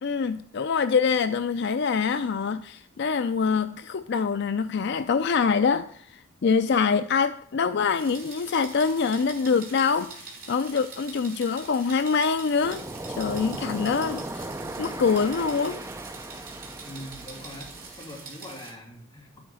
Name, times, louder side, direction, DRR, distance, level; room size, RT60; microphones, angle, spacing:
voice 1, 0.0-12.8 13.2-14.5 14.8-15.8, left 5 dB, 55° left, 0.4 m, -25 dB
sound 1, 7.9-18.7, right 4 dB, 45° right, 3.8 m, -44 dB
Waves surf, 12.6-18.0, right 2 dB, 15° right, 0.5 m, -37 dB
voice 2, 16.8-19.4, left 1 dB, 15° left, 3.1 m, -43 dB
12.0 x 8.7 x 6.2 m
head